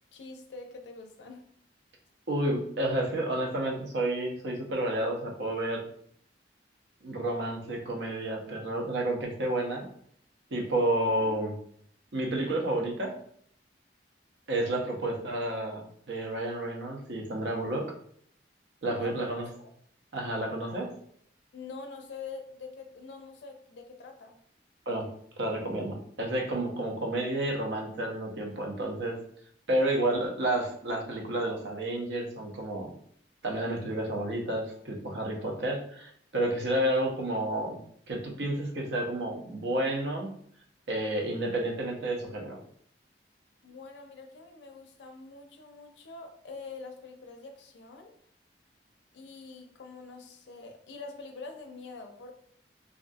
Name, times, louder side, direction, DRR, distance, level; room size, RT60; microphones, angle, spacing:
voice 1, 0.1-1.4 10.6-10.9 19.0-19.7 21.5-24.4 43.6-48.1 49.1-52.3, left 4 dB, 75° left, 4 dB, 0.4 m, -45 dB
voice 2, 2.3-5.9 7.0-9.9 10.5-11.6 12.1-13.1 14.5-17.9 18.8-19.5 20.1-20.9 24.9-25.1 25.4-29.2 29.7-32.9 33.4-37.8 38.1-40.3 40.9-42.6, right 1 dB, 70° right, 0 dB, 0.6 m, -30 dB
2.4 x 2.3 x 2.5 m, 0.64 s
head